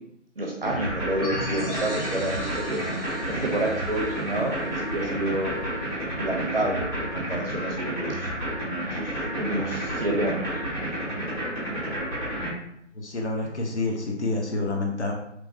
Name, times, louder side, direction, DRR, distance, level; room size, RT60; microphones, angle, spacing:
voice 1, 0.4-2.8 3.3-5.6 6.1-8.3 8.9-10.6, right 1 dB, 50° right, -1 dB, 0.6 m, -29 dB
sound 1, 0.6-12.5, right 1 dB, 15° left, 0.9 m, -30 dB
sound 2, 1.2-5.7, equal, 5° right, 1.1 m, -38 dB
voice 2, 12.9-15.1, left 2 dB, 65° left, 1 dB, 0.8 m, -28 dB
3.1 x 3.0 x 2.5 m, 0.76 s
figure-of-eight pair, 155°, 37 cm